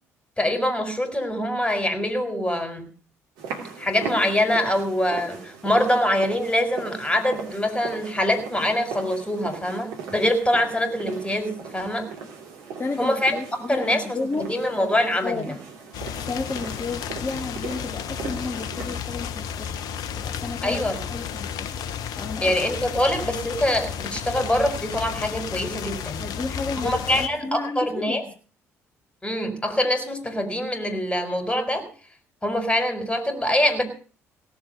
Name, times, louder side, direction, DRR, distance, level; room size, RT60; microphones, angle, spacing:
voice 1, 0.4-2.9 3.8-12.1 13.0-13.4 13.7-15.5 20.6-21.0 22.4-26.2 26.8-28.2 29.2-31.8 32.4-33.8, left 1 dB, 15° left, 8 dB, 4.8 m, -24 dB
sound 1, 3.4-19.0, right 5 dB, 65° right, 3.0 m, -38 dB
voice 2, 12.8-14.6 15.2-15.6 15.9-19.8 20.1-21.8 22.2-22.6 26.2-28.3, left 3 dB, 30° left, 4 dB, 1.9 m, -32 dB
sound 2, 15.9-27.3, left 8 dB, 60° left, 1.1 m, -33 dB
18.0 x 7.5 x 8.1 m, 0.39 s
figure-of-eight pair, 50°, 7 cm